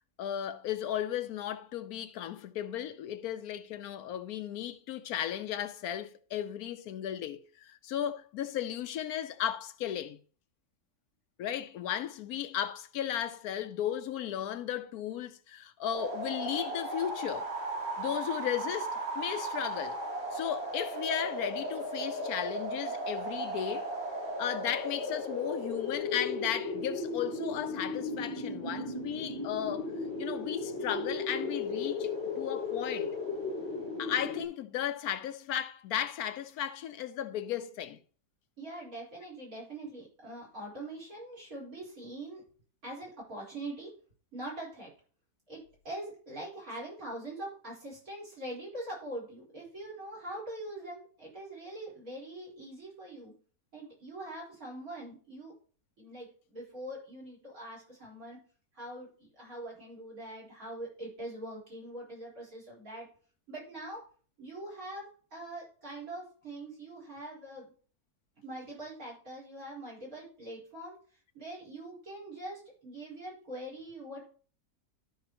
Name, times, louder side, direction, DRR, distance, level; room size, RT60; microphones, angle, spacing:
voice 1, 0.2-10.2 11.4-17.5 18.0-20.0 20.3-23.9 24.4-29.9 30.2-33.2 34.0-38.0, left 10 dB, 75° left, 1.1 m, -35 dB
sound 1, 15.9-34.5, left 1 dB, 45° right, 3.7 m, -36 dB
voice 2, 38.6-42.4 42.8-43.9 44.3-44.9 45.5-45.6 45.8-53.3 53.7-55.5 56.0-58.4 58.7-63.1 63.5-64.0 64.4-67.7 68.4-71.0 71.3-74.3, right 1 dB, 65° right, 4.5 m, -43 dB
13.0 x 5.6 x 2.9 m
omnidirectional pair, 1.6 m